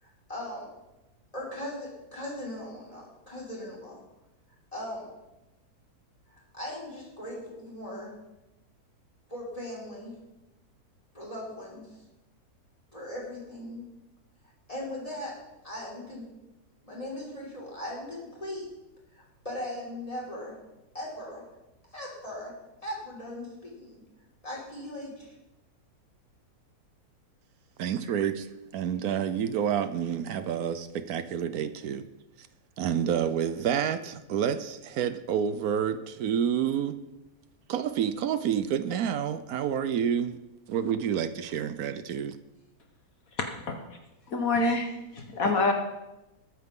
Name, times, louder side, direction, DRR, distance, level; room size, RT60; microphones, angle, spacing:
voice 1, 0.0-0.7 1.3-4.0 4.7-5.1 6.3-8.1 9.3-10.1 11.1-12.0 12.9-13.8 14.7-15.3 15.6-16.2 16.8-18.7 19.2-20.5 20.9-21.4 21.9-22.5 22.8-24.0 24.4-25.3, left 1 dB, 20° left, -4 dB, 5.0 m, -39 dB
voice 2, 27.8-28.5 28.7-32.1 32.4-32.5 32.8-37.0 37.7-40.4 40.7-42.4, right 8 dB, 75° right, 12 dB, 1.2 m, -29 dB
voice 3, 44.3-44.9 45.2-45.7, left 3 dB, 65° left, 3 dB, 1.6 m, -25 dB
21.0 x 9.4 x 3.7 m, 0.98 s
omnidirectional pair, 1.6 m